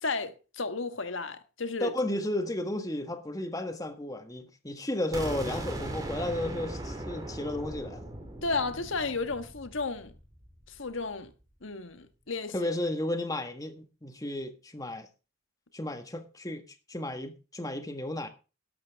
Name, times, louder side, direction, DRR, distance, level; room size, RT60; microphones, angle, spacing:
voice 1, 0.0-1.9 8.4-10.1 10.7-11.3 11.6-12.7, left 3 dB, 70° left, 1.5 m, -33 dB
voice 2, 1.8-8.0 12.5-15.1 15.7-16.6 16.9-18.3, left 1 dB, 15° left, 1.5 m, -33 dB
sound 1, 5.1-10.9, right 1 dB, 15° right, 2.8 m, -39 dB
12.0 x 12.0 x 3.5 m
head